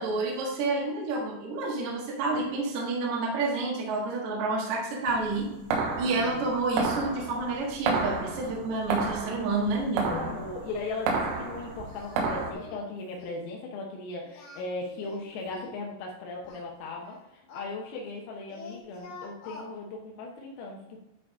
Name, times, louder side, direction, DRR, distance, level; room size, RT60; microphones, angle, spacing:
voice 1, 0.0-5.5 6.0-10.2, right 3 dB, 55° right, -2 dB, 2.1 m, -29 dB
sound 1, 5.1-12.5, right 4 dB, 85° right, 3.7 m, -31 dB
voice 2, 5.9-6.5 10.1-21.0, left 3 dB, 85° left, -1 dB, 3.7 m, -38 dB
Singing, 11.9-12.2 12.5-12.9 13.2-13.5 14.2-15.8 16.4-18.2 18.5-19.7, left 3 dB, 65° left, 1.9 m, -46 dB
11.5 x 4.9 x 3.6 m, 0.92 s
omnidirectional pair, 5.9 m